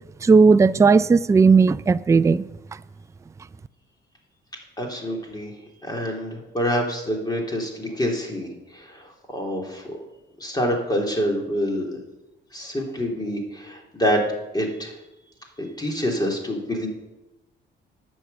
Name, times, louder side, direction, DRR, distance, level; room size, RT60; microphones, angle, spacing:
voice 1, 0.2-2.5, right 4 dB, 15° right, 0.3 m, -15 dB
voice 2, 4.8-5.5 5.8-10.0 10.4-12.0 12.5-14.2 14.5-14.9 15.6-16.9, equal, 20° left, 3.1 m, -26 dB
10.0 x 6.3 x 7.9 m
cardioid pair, 90°, 20 cm